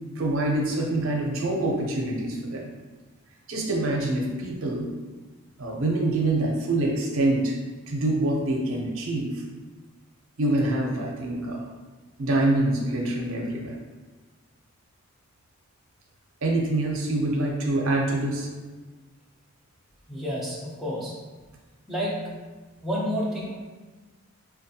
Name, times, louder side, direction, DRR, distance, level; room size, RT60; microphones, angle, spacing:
voice 1, 0.2-2.7 3.5-4.9 5.6-7.5 7.9-9.4 10.4-11.6 12.2-13.7 16.4-18.5, right 2 dB, 65° right, -1 dB, 0.6 m, -25 dB
voice 2, 20.1-21.2 21.9-22.4 22.8-23.6, equal, ahead, -7 dB, 0.4 m, -30 dB
4.3 x 2.3 x 2.7 m, 1.3 s
head